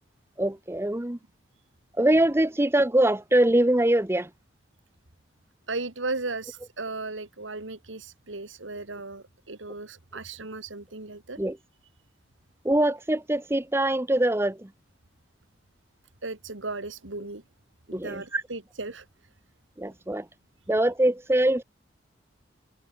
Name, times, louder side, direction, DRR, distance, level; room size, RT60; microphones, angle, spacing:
voice 1, 0.4-1.2 2.0-4.3 11.4-11.6 12.6-14.7 17.9-18.4 19.8-20.3 20.7-21.6, right 1 dB, 15° right, 0.8 m, -23 dB
voice 2, 5.7-11.4 16.2-17.4 17.9-19.1, right 3 dB, 85° right, 2.5 m, -36 dB
head